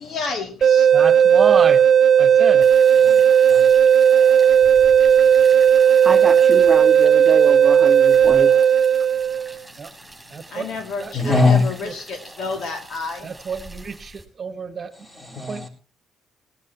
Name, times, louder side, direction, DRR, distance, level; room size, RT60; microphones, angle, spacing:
voice 1, 0.0-0.9 10.5-13.3, left 4 dB, 70° left, 2.4 m, -30 dB
sound 1, 0.6-9.6, right 8 dB, 55° right, 0.7 m, -14 dB
voice 2, 0.9-1.9 2.2-2.7 9.8-9.9 10.3-10.6 11.0-11.4 13.2-14.9 15.5-15.7, right 6 dB, 40° right, 1.4 m, -28 dB
sound 2, 2.6-14.2, right 1 dB, 5° right, 5.9 m, -44 dB
voice 3, 2.8-3.2 3.5-4.7 11.1-11.7 14.9-15.7, left 3 dB, 20° left, 4.3 m, -23 dB
voice 4, 6.0-8.5, right 3 dB, 20° right, 1.1 m, -26 dB
19.0 x 15.5 x 2.9 m
cardioid pair, 90°, 0 cm